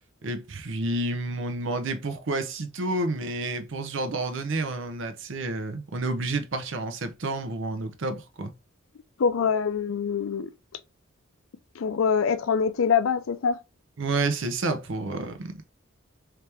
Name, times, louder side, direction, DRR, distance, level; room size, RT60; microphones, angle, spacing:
voice 1, 0.2-8.5 14.0-15.6, right 2 dB, 65° right, 0.6 m, -30 dB
voice 2, 9.2-10.5 11.8-13.6, left 6 dB, 85° left, 0.4 m, -24 dB
3.3 x 2.9 x 3.3 m
head